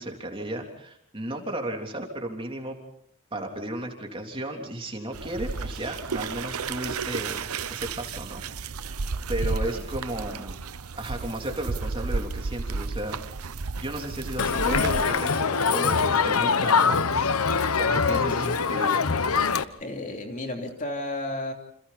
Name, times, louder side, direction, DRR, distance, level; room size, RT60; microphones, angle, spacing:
voice 1, 0.0-2.8 3.3-8.4 8.7-9.0 9.3-10.6 11.0-13.2 13.8-17.1 17.8-19.0, right 1 dB, 25° right, 2 dB, 3.4 m, -34 dB
sound 1, 5.1-15.0, right 4 dB, 85° right, 0.9 m, -32 dB
voice 2, 9.4-9.9 19.8-21.5, left 2 dB, 35° left, 3 dB, 3.2 m, -33 dB
Crowd, 14.4-19.6, left 5 dB, 80° left, 1.1 m, -23 dB
29.5 x 28.0 x 4.3 m, 0.67 s
head